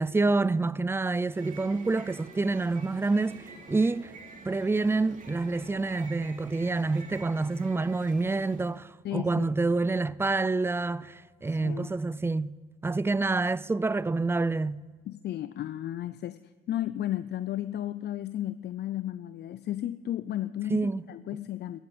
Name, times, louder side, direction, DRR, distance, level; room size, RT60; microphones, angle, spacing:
voice 1, 0.0-4.1 4.4-12.5 12.8-14.8 20.7-21.1, right 3 dB, 10° right, 0.3 m, -27 dB
sound 1, 1.1-8.8, right 3 dB, 40° right, 2.6 m, -48 dB
voice 2, 9.0-9.5 11.5-11.9 15.1-21.8, left 12 dB, 60° left, 0.4 m, -34 dB
14.0 x 9.2 x 7.5 m
cardioid pair, 90°, 20 cm